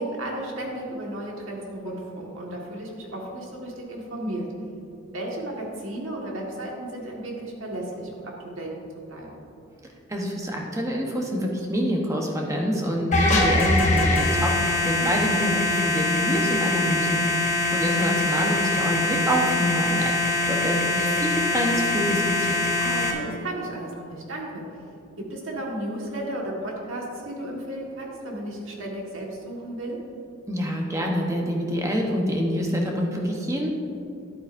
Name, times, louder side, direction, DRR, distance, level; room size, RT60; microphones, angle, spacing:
voice 1, 0.0-4.5 5.1-8.7 9.1-9.4 15.0-15.1 22.8-24.6 25.2-30.0, right 1 dB, 80° right, -2 dB, 1.7 m, -34 dB
voice 2, 10.1-22.6 30.5-33.7, equal, 15° right, 0 dB, 1.0 m, -26 dB
sound 1, 13.1-23.1, left 2 dB, 35° left, 1.0 m, -23 dB
11.0 x 8.8 x 2.6 m, 2.6 s
head